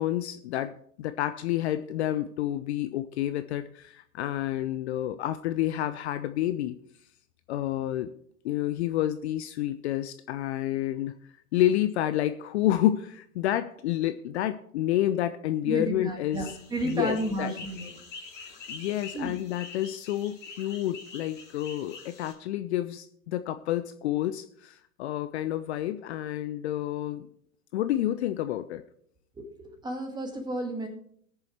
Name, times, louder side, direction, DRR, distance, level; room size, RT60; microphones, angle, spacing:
voice 1, 0.0-6.8 7.5-8.1 8.4-11.2 11.5-16.5 16.8-17.5 18.7-27.3 27.7-28.8, left 13 dB, 50° left, 12 dB, 0.6 m, -29 dB
voice 2, 15.7-17.9 19.1-19.4 29.4-30.9, right 1 dB, 10° right, 3 dB, 2.2 m, -32 dB
sound 1, 16.3-22.3, left 4 dB, 25° left, 2.9 m, -45 dB
19.5 x 6.9 x 3.4 m, 0.65 s
hypercardioid pair, 110°, 43 cm